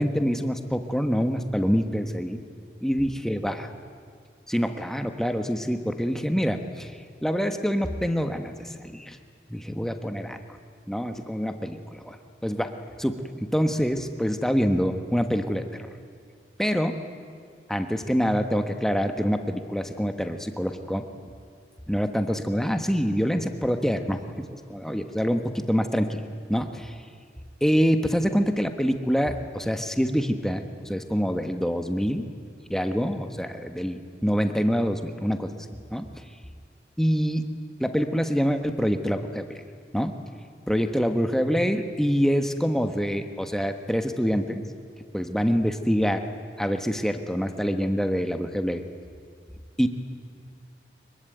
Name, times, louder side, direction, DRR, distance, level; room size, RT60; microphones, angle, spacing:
voice 1, 0.0-2.4 2.8-3.6 4.5-6.9 7.2-9.2 9.5-10.4 10.9-12.2 12.4-15.9 16.6-17.0 17.7-21.0 21.9-26.2 26.5-27.0 27.6-32.3 32.7-35.5 35.9-36.1 37.0-37.5 37.8-39.6 39.9-40.1 40.7-44.6 45.1-46.3 46.6-48.8 49.8-49.9, equal, ahead, 6 dB, 1.2 m, -26 dB
24.5 x 22.5 x 9.3 m, 2.1 s
head